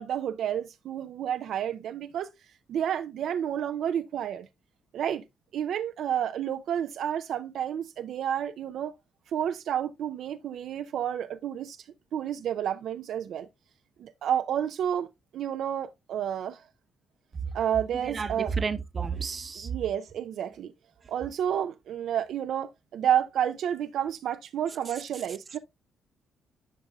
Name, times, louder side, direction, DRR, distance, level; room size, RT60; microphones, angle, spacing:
voice 1, 0.0-2.3 2.7-4.5 4.9-5.2 5.5-8.9 9.3-11.8 12.1-13.5 14.0-15.1 15.3-16.6 17.5-18.5 19.6-20.7 21.1-25.6, right 9 dB, 70° right, 0.4 m, -30 dB
voice 2, 18.0-19.7, right 5 dB, 35° right, 0.8 m, -31 dB
10.5 x 5.2 x 2.2 m
cardioid pair, 90°, 0 cm